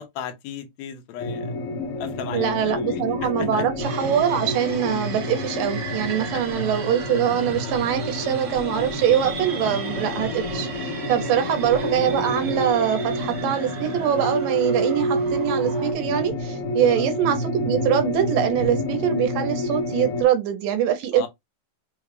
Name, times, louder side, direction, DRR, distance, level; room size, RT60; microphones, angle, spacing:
voice 1, 0.0-1.5 2.0-3.7 6.3-6.4 16.8-17.1 21.1-21.3, left 9 dB, 85° left, 2.6 m, -35 dB
sound 1, 1.2-20.2, left 1 dB, 70° left, 1.4 m, -28 dB
voice 2, 2.3-21.3, right 10 dB, 75° right, 2.2 m, -23 dB
sound 2, 3.8-15.9, right 5 dB, 55° right, 1.6 m, -37 dB
5.8 x 2.3 x 3.2 m
omnidirectional pair, 4.3 m